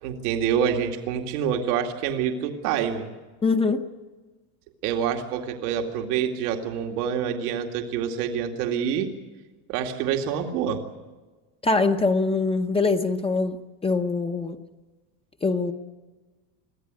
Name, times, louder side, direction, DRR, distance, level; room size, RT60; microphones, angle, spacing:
voice 1, 0.0-3.1 4.8-9.1 9.7-10.8, right 8 dB, 85° right, 3 dB, 2.4 m, -26 dB
voice 2, 3.4-3.8 11.6-13.6 13.8-14.6 15.4-15.7, left 3 dB, 10° left, 6 dB, 0.8 m, -23 dB
24.0 x 15.5 x 9.6 m, 1.3 s
cardioid pair, 150°, 45 cm